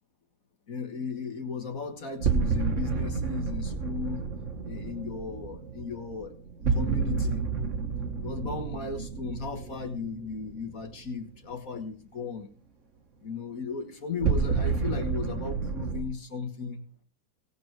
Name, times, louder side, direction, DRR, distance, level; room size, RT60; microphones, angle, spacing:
voice 1, 0.7-4.2 4.6-6.3 6.7-7.4 8.2-12.5 13.2-16.8, left 5 dB, 45° left, 5 dB, 1.7 m, -36 dB
sound 1, 2.2-11.2 14.2-16.0, right 5 dB, 40° right, 1.3 m, -30 dB
18.0 x 6.1 x 4.6 m, 0.40 s
omnidirectional pair, 2.3 m